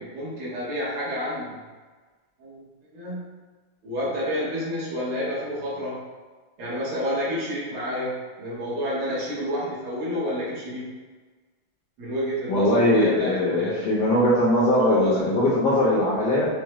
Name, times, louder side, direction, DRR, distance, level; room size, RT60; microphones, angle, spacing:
voice 1, 0.0-1.6 2.4-2.6 2.9-3.3 3.8-6.0 6.6-10.9 12.0-13.9 14.9-15.3, equal, 75° right, -8 dB, 2.0 m, -29 dB
voice 2, 12.5-16.5, left 1 dB, 65° left, -7 dB, 1.0 m, -21 dB
4.8 x 2.1 x 2.9 m, 1.3 s
omnidirectional pair, 2.4 m